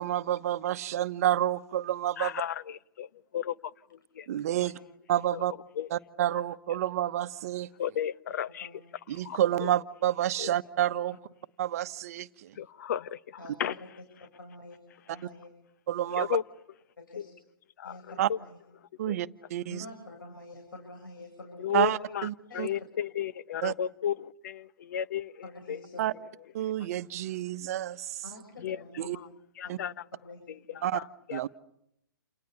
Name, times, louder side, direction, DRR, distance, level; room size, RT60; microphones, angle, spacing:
voice 1, 0.0-2.4 4.3-4.7 5.1-5.5 5.9-7.7 9.1-11.1 11.6-12.5 15.9-16.4 18.2-18.3 19.0-19.8 21.7-22.7 23.6-23.7 26.0-26.1 26.5-28.2 29.0-29.2 29.7-29.8 30.8-31.0 31.3-31.5, right 12 dB, 45° right, 14 dB, 1.1 m, -29 dB
voice 2, 2.2-3.1 3.3-3.5 4.2-4.3 5.3-5.4 5.8-5.9 7.8-8.7 9.2-9.7 10.4-10.5 12.6-13.2 13.6-13.7 16.1-16.4 17.8-17.9 18.3-18.4 19.0-19.2 21.6-22.3 22.5-25.3 25.7-25.8 26.6-26.7 28.6-28.8 29.6-29.9 30.8-31.4, left 9 dB, 50° left, 16 dB, 1.0 m, -33 dB
voice 3, 13.4-13.9 14.4-14.8 15.1-15.5 17.0-17.3 17.8-18.6 19.7-21.7 22.5-22.6 25.4-26.0 28.2-29.2 29.6-29.8 30.2-30.5, left 2 dB, 75° left, 3 dB, 7.5 m, -47 dB
29.5 x 28.0 x 6.9 m, 0.78 s
figure-of-eight pair, 130°, 11 cm